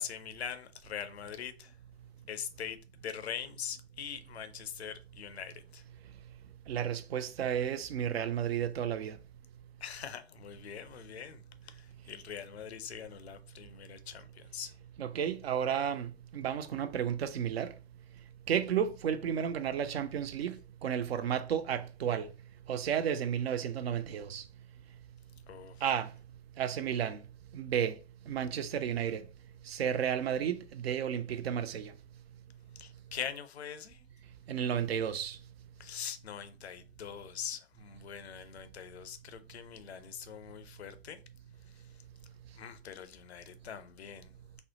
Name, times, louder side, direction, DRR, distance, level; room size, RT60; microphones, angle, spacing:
voice 1, 0.0-1.8 2.3-5.8 9.8-14.7 25.5-25.8 32.8-34.0 35.8-41.2 41.7-42.0 42.5-44.3, left 8 dB, 75° left, 0.5 m, -43 dB
voice 2, 6.7-9.2 15.0-17.7 18.5-22.3 22.7-24.4 25.8-26.1 26.6-27.2 27.5-28.0 28.3-29.2 29.7-31.9 34.5-35.4, right 8 dB, 70° right, 0.5 m, -32 dB
4.3 x 2.1 x 2.6 m
figure-of-eight pair, 90°, 32 cm